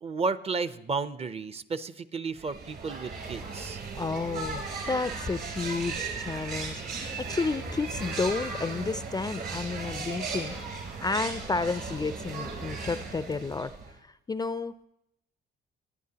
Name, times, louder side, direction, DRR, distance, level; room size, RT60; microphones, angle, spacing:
voice 1, 0.0-3.8, right 4 dB, 30° right, 14 dB, 0.5 m, -33 dB
sound 1, 2.4-14.0, right 4 dB, 55° right, 3.3 m, -36 dB
voice 2, 3.9-10.6 11.0-13.7 14.0-14.9, left 4 dB, 20° left, 13 dB, 0.3 m, -31 dB
19.0 x 9.9 x 2.8 m, 0.82 s
cardioid pair, 90°, 20 cm